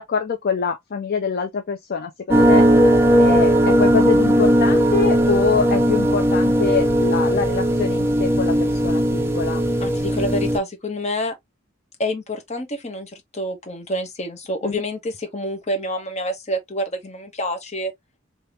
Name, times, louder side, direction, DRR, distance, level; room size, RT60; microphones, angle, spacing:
voice 1, 0.0-2.7 3.2-9.6 14.6-14.8, left 6 dB, 50° left, 0.4 m, -25 dB
sound 1, 2.3-10.6, equal, 10° right, 0.5 m, -17 dB
voice 2, 9.8-11.3 12.0-17.9, equal, 35° left, 1.0 m, -27 dB
3.4 x 2.7 x 2.7 m
head